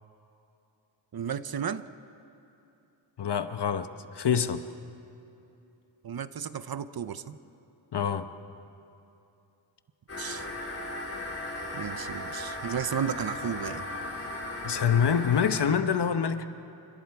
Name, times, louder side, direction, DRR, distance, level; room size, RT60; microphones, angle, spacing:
voice 1, 1.1-1.9 6.0-7.4 10.2-10.5 11.7-13.9, right 7 dB, 50° right, 13 dB, 0.8 m, -33 dB
voice 2, 3.2-4.6 7.9-8.3 14.6-16.5, left 7 dB, 60° left, 10 dB, 1.1 m, -25 dB
sound 1, 10.1-15.7, left 2 dB, 30° left, 4.3 m, -36 dB
29.0 x 25.5 x 4.8 m, 2.8 s
wide cardioid pair, 95°, 46 cm